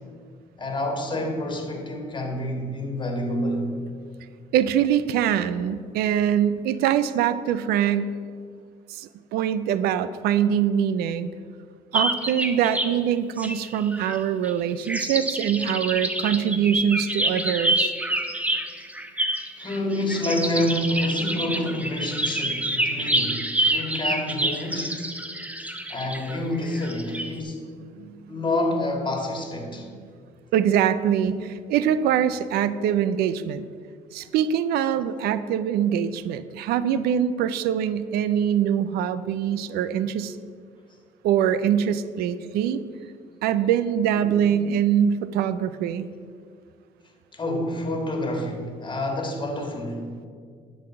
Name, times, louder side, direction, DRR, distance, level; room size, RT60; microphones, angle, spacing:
voice 1, 0.6-3.8 19.6-25.0 25.9-27.6 28.3-29.9 44.2-44.6 47.3-50.1, left 1 dB, 30° left, 3 dB, 1.9 m, -28 dB
voice 2, 4.5-8.1 8.9-11.3 11.9-17.9 28.0-28.3 29.7-30.1 30.5-33.7 34.1-40.4 41.2-42.8 43.4-46.1, right 9 dB, 80° right, 13 dB, 0.5 m, -23 dB
sound 1, 11.9-12.9 13.4-14.5 14.8-27.3, right 1 dB, 10° right, 0.9 m, -27 dB
11.0 x 4.0 x 7.5 m, 2.1 s
supercardioid pair, 80°, 16 cm